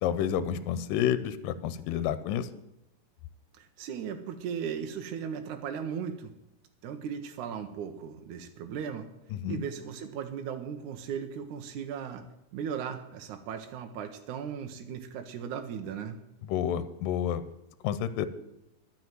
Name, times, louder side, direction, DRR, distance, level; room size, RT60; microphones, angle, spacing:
voice 1, 0.0-2.5 9.3-9.6 16.5-17.4 17.8-18.3, left 9 dB, 85° left, 14 dB, 2.3 m, -29 dB
voice 2, 3.6-6.3 6.8-9.1 9.5-12.2 12.5-16.2, right 7 dB, 70° right, 5 dB, 2.2 m, -37 dB
12.5 x 5.9 x 9.1 m, 0.87 s
omnidirectional pair, 4.0 m